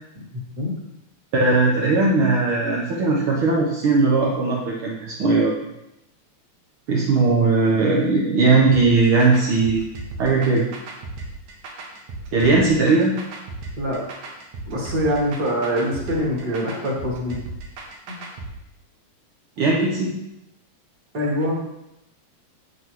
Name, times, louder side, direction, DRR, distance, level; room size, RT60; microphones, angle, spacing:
voice 1, 0.1-0.7 13.8-14.0 14.7-17.4 18.1-18.2 21.1-21.5, equal, 35° right, -3 dB, 2.7 m, -24 dB
voice 2, 1.4-5.5 6.9-9.8 10.2-10.6 12.3-13.1 19.6-20.1, right 3 dB, 60° right, -4 dB, 1.6 m, -18 dB
sound 1, 8.7-18.5, right 2 dB, 85° right, 2.7 m, -36 dB
11.0 x 8.3 x 3.2 m, 0.88 s
omnidirectional pair, 3.3 m